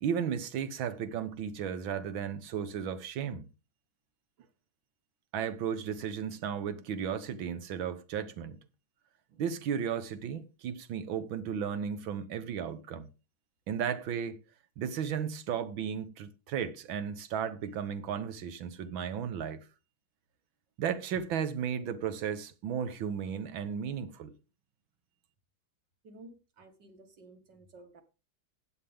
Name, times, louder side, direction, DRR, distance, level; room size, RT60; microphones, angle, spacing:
voice 1, 0.0-3.5 5.3-8.6 9.4-13.1 13.7-14.4 14.8-19.7 20.8-24.3, right 8 dB, 80° right, 1.9 m, -34 dB
voice 2, 26.0-28.0, right 2 dB, 60° right, 2.5 m, -53 dB
15.5 x 9.7 x 3.5 m
omnidirectional pair, 2.2 m